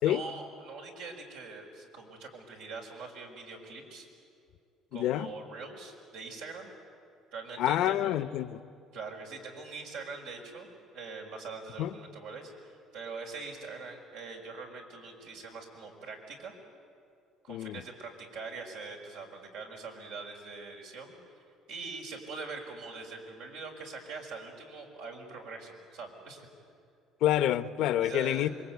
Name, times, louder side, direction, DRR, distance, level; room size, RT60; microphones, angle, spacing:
voice 1, 0.0-4.1 4.9-6.7 7.3-8.2 8.9-16.5 17.4-21.1 21.7-26.5 28.0-28.5, right 4 dB, 90° right, 0 dB, 5.7 m, -43 dB
voice 2, 4.9-5.3 7.6-8.6 11.8-11.9 17.5-17.8 27.2-28.5, left 12 dB, 75° left, 14 dB, 0.8 m, -27 dB
27.0 x 23.0 x 9.5 m, 2.5 s
cardioid pair, 100°, 0 cm